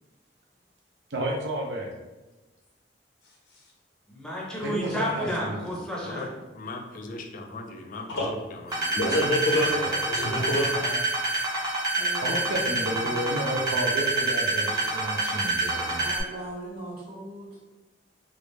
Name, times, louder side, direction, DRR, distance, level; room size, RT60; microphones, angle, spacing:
voice 1, 1.1-1.9 4.6-5.7 12.2-16.0, right 1 dB, 80° right, 0 dB, 0.5 m, -31 dB
voice 2, 4.1-6.3 9.5-10.0, equal, 5° left, -4 dB, 0.6 m, -32 dB
voice 3, 6.0-9.2, left 2 dB, 50° left, 3 dB, 0.4 m, -40 dB
sound 1, 8.7-16.2, right 3 dB, 20° right, 0.9 m, -26 dB
voice 4, 8.9-11.0, left 1 dB, 85° left, -2 dB, 0.6 m, -26 dB
voice 5, 12.0-13.2 14.8-14.9 16.0-17.6, right 1 dB, 60° right, -9 dB, 1.2 m, -40 dB
3.3 x 2.4 x 3.1 m, 1.1 s
head